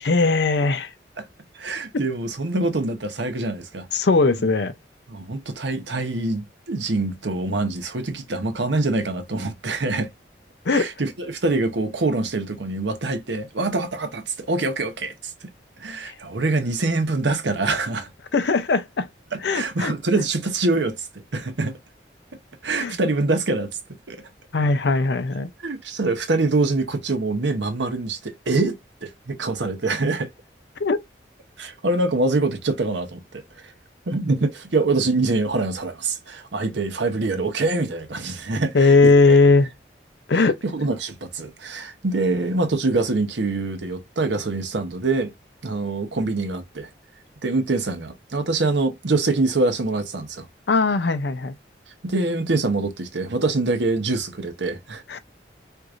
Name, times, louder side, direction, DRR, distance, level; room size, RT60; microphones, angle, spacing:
voice 1, 0.0-0.9 3.9-4.7 10.7-10.9 16.0-16.1 18.3-19.1 19.4-19.9 22.8-23.0 24.5-25.5 30.8-31.0 38.7-39.7 40.3-40.6 50.7-51.5 55.1-55.2, left 3 dB, 75° left, 0.6 m, -19 dB
voice 2, 1.5-3.9 4.4-4.5 5.1-10.1 10.7-15.5 15.8-18.1 19.3-21.8 22.6-23.8 24.1-24.3 25.6-30.3 31.6-33.7 34.1-39.4 40.3-45.3 45.6-46.9 47.4-50.5 52.0-55.0, right 3 dB, 85° right, 0.9 m, -25 dB
4.6 x 2.5 x 2.5 m
head